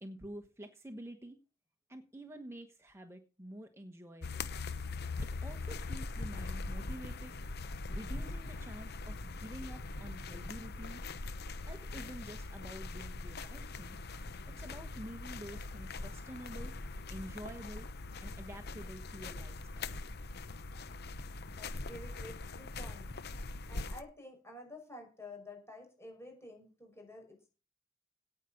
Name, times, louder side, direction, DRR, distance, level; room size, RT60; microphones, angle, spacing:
voice 1, 0.0-1.4 1.9-4.5 5.2-7.3 7.9-11.0 11.6-14.0 14.4-16.7 17.1-17.9 18.2-20.0, right 1 dB, 15° right, 5 dB, 1.3 m, -48 dB
sound 1, 4.2-24.0, left 3 dB, 55° left, 0.9 m, -42 dB
voice 2, 21.4-23.1 23.7-27.5, left 1 dB, 15° left, 2 dB, 6.1 m, -50 dB
17.5 x 5.9 x 6.5 m, 0.34 s
head